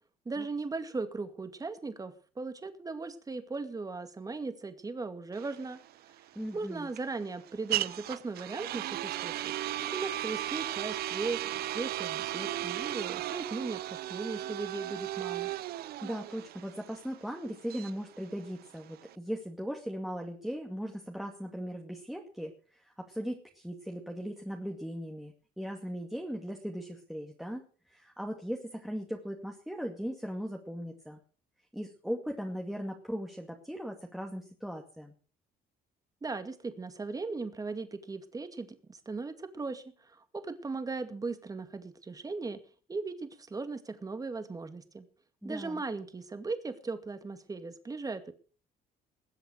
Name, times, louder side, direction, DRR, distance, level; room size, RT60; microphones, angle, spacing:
voice 1, 0.3-5.8 6.5-9.5 9.9-15.5 36.2-42.6 42.9-45.1 45.4-48.3, right 3 dB, 20° right, 9 dB, 2.2 m, -38 dB
sound 1, 5.3-19.2, right 14 dB, 65° right, 0.7 m, -36 dB
voice 2, 6.4-6.9 16.0-31.2 31.7-35.1 45.4-45.8, equal, ahead, 1 dB, 2.3 m, -38 dB
20.5 x 7.9 x 6.5 m, 0.39 s
cardioid pair, 110°, 17 cm